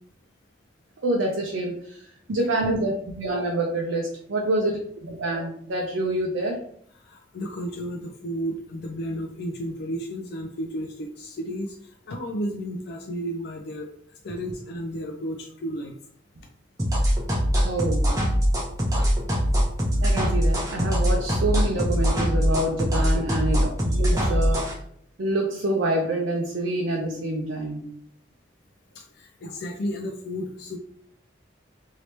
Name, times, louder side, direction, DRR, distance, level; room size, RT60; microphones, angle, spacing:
voice 1, 1.0-6.6 17.6-18.2 20.0-24.7 25.2-27.8 29.4-29.5, right 1 dB, 85° right, 0 dB, 0.5 m, -27 dB
voice 2, 7.0-13.9 14.2-16.0 24.2-24.6 28.9-30.8, equal, 55° left, 2 dB, 0.3 m, -33 dB
sound 1, 16.8-24.7, equal, 20° right, 0.7 m, -22 dB
2.9 x 2.7 x 3.2 m, 0.65 s
head